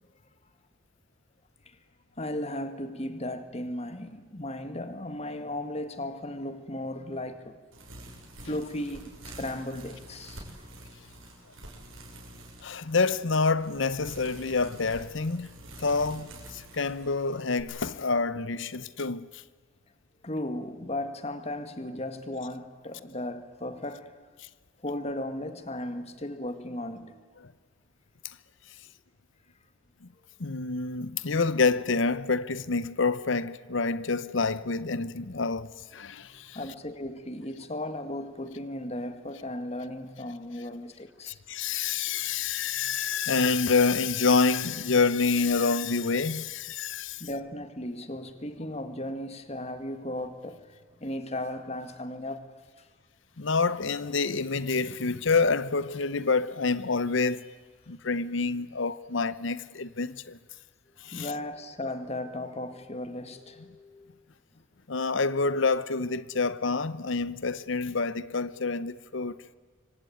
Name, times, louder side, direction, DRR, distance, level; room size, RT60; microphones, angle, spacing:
voice 1, 2.2-7.6 8.4-10.7 20.2-24.1 24.8-27.2 36.5-41.4 42.7-43.3 47.2-52.5 61.1-64.1, left 1 dB, 30° left, 1.9 m, -36 dB
sound 1, 7.7-17.6, right 1 dB, 75° right, 6.7 m, -47 dB
voice 2, 12.6-15.5 15.8-19.4 24.4-24.5 27.4-27.5 30.0-30.1 30.4-36.6 41.3-47.2 53.4-57.5 57.9-60.4 61.0-61.3 64.9-69.4, left 4 dB, 60° left, 0.8 m, -27 dB
25.5 x 24.5 x 9.4 m
head